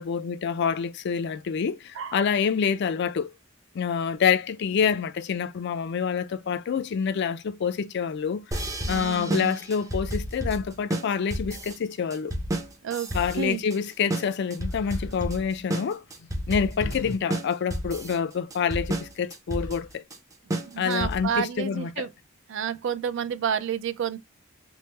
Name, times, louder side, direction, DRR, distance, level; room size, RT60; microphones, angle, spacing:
voice 1, 0.0-3.3 3.7-8.4 8.9-12.3 13.1-16.0 16.5-20.0 20.8-22.1, left 6 dB, 55° left, 0.4 m, -27 dB
sound 1, 8.5-21.4, right 1 dB, 15° right, 0.5 m, -31 dB
voice 2, 8.8-9.6 12.8-13.6 20.7-22.1 22.5-24.2, right 7 dB, 65° right, 0.4 m, -30 dB
sound 2, 14.7-15.1 16.1-17.2 17.5-17.6 19.2-19.3 19.5-20.0, left 2 dB, 80° left, 0.7 m, -40 dB
3.2 x 2.0 x 3.1 m
head